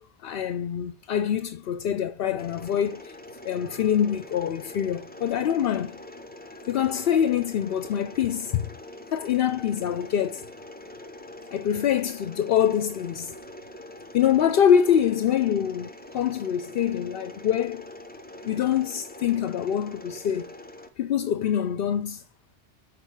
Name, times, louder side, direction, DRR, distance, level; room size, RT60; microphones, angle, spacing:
voice 1, 0.0-3.2 3.4-6.0 6.7-8.7 9.1-10.4 11.5-13.3 14.1-17.9 18.4-20.5 21.0-22.2, left 9 dB, 65° left, 0.7 m, -25 dB
Mechanisms, 2.4-20.9, left 1 dB, 10° left, 0.6 m, -44 dB
6.3 x 4.6 x 5.7 m
omnidirectional pair, 1.1 m